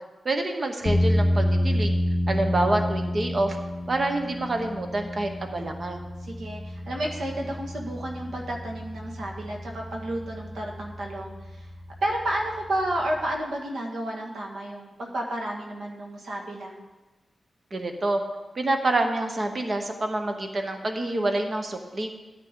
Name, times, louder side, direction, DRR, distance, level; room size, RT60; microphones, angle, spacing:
voice 1, 0.2-2.0 2.3-3.6 3.9-6.0 17.7-18.2 18.5-22.1, right 2 dB, 35° right, 5 dB, 0.9 m, -27 dB
sound 1, 0.8-13.4, left 1 dB, 25° left, 0.5 m, -29 dB
voice 2, 6.2-11.7 12.0-16.8, right 1 dB, 80° right, -1 dB, 1.8 m, -31 dB
13.0 x 8.2 x 3.7 m, 1.2 s
wide cardioid pair, 175°, 0 cm